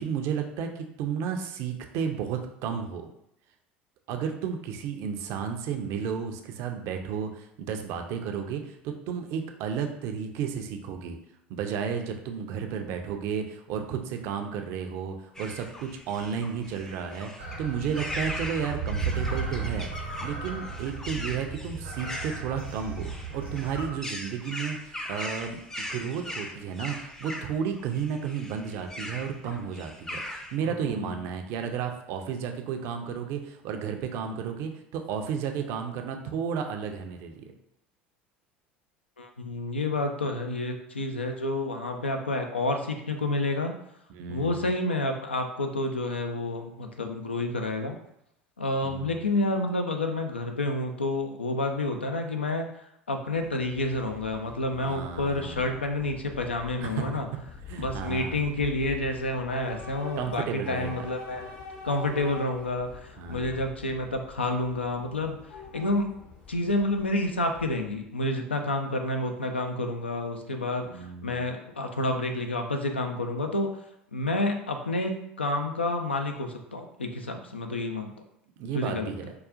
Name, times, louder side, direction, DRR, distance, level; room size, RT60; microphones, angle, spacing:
voice 1, 0.0-3.1 4.1-11.2 11.5-19.9 20.2-37.5 44.1-44.7 48.8-49.1 54.8-55.7 56.8-57.1 57.7-58.4 60.2-61.0 63.2-63.6 70.9-71.4 78.6-79.3, right 7 dB, 50° right, 5 dB, 0.4 m, -33 dB
sound 1, 15.3-30.6, left 1 dB, 10° left, 0.5 m, -40 dB
sound 2, 17.4-23.9, right 4 dB, 80° right, 0.8 m, -35 dB
voice 2, 30.6-31.1 39.2-43.7 44.3-48.0 48.6-52.7 53.1-57.3 57.8-61.5 61.8-65.4 65.7-66.1 66.5-73.7 74.1-78.1 78.7-79.1, left 2 dB, 85° left, 4 dB, 0.4 m, -29 dB
Train / Subway metro underground, 53.4-68.1, left 5 dB, 55° left, 0.9 m, -45 dB
4.7 x 2.3 x 2.4 m, 0.77 s
figure-of-eight pair, 65°, 6 cm